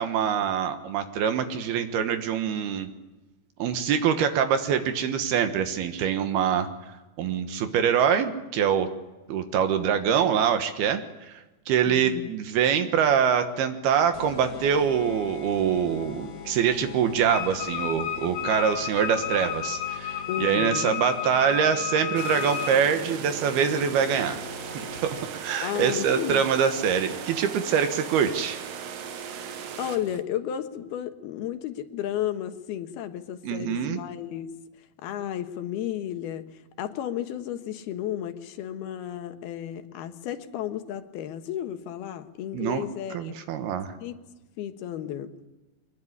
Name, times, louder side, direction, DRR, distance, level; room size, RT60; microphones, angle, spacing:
voice 1, 0.0-2.9 3.6-6.7 7.2-8.9 9.3-11.3 11.7-24.4 25.0-28.6 33.4-34.0 42.5-42.8 43.1-43.9, right 8 dB, 75° right, 8 dB, 3.3 m, -24 dB
voice 2, 11.9-12.3 20.3-20.9 25.6-26.5 29.8-34.5 35.0-43.4 44.0-44.2 44.6-45.3, left 11 dB, 80° left, 9 dB, 3.2 m, -33 dB
sound 1, 14.1-25.5, left 6 dB, 45° left, 2.0 m, -42 dB
Wind instrument woodwind instrument, 17.3-22.8, left 10 dB, 60° left, 2.2 m, -32 dB
sound 2, 22.1-30.2, right 7 dB, 60° right, 1.7 m, -38 dB
23.5 x 20.0 x 9.8 m, 1.1 s
omnidirectional pair, 4.5 m